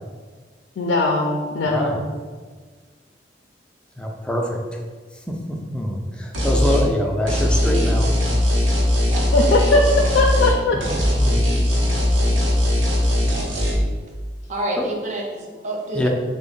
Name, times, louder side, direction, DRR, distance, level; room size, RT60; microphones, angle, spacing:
voice 1, 0.8-2.0 9.3-9.8 10.1-10.8, left 2 dB, 80° left, 0 dB, 0.4 m, -19 dB
voice 2, 1.7-2.0 4.0-4.8 5.1-8.1 11.2-11.4 14.8-14.9 15.9-16.1, left 1 dB, 5° left, 0 dB, 0.3 m, -25 dB
sound 1, 6.3-6.9 7.3-10.6 10.8-13.7, left 1 dB, 90° right, 0.8 m, -19 dB
voice 3, 9.1-9.5 12.1-12.3 14.5-16.1, right 1 dB, 40° right, 0 dB, 0.5 m, -29 dB
3.5 x 2.1 x 3.8 m, 1.5 s
head